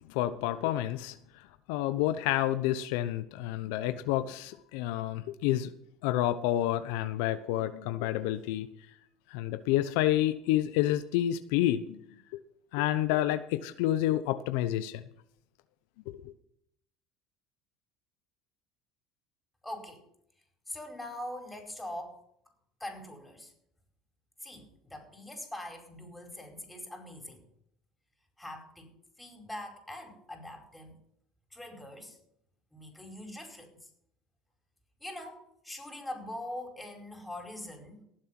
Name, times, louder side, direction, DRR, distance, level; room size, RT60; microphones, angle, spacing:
voice 1, 0.1-1.2 1.7-5.7 6.0-8.7 9.3-12.0 12.3-12.4 12.7-15.0 16.1-16.3, left 13 dB, 80° left, 12 dB, 0.7 m, -29 dB
voice 2, 19.6-20.0 20.7-22.2 22.8-23.5 24.4-27.4 28.4-28.9 29.2-31.0 31.5-32.2 32.7-33.9 35.0-38.0, left 1 dB, 5° left, 3 dB, 4.8 m, -43 dB
19.0 x 7.7 x 6.0 m, 0.73 s
supercardioid pair, 100°, 0 cm